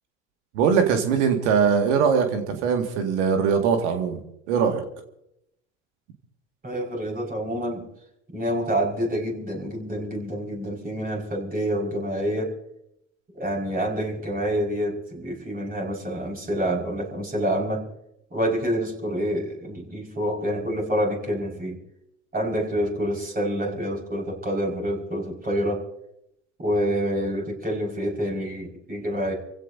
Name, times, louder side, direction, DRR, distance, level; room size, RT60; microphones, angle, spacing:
voice 1, 0.5-4.2 4.5-4.8, right 6 dB, 65° right, 6 dB, 2.1 m, -21 dB
voice 2, 6.6-7.8 8.3-12.5 13.3-17.8 18.3-21.8 22.3-25.8 26.6-29.3, equal, 25° right, -1 dB, 5.3 m, -27 dB
28.5 x 16.0 x 2.7 m, 0.80 s
figure-of-eight pair, 65°, 37 cm